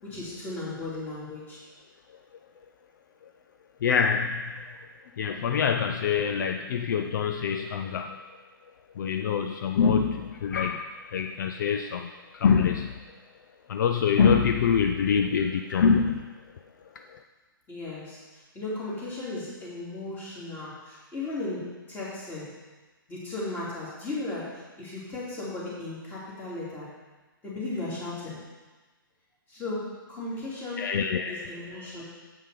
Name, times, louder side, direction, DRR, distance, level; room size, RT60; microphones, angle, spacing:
voice 1, 0.0-1.6 17.7-18.2 18.5-22.5 23.1-26.9 27.4-28.4 29.5-30.8 31.3-32.0, left 2 dB, 15° left, -7 dB, 2.7 m, -36 dB
voice 2, 3.8-4.3 5.2-8.1 9.0-10.2 10.4-10.8 11.1-12.0 12.4-12.9 13.7-16.2 30.8-31.5, left 6 dB, 55° left, 6 dB, 0.4 m, -24 dB
7.6 x 5.5 x 4.9 m, 1.2 s
hypercardioid pair, 140°, 12 cm